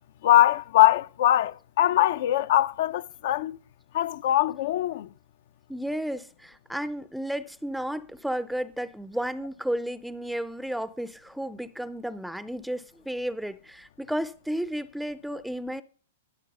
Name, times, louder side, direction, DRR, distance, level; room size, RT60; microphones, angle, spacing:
voice 1, 0.2-3.6 3.9-5.1, left 13 dB, 60° left, 0.6 m, -22 dB
voice 2, 5.7-15.8, equal, ahead, 0.6 m, -33 dB
14.0 x 7.3 x 5.5 m
hypercardioid pair, 140°, 0 cm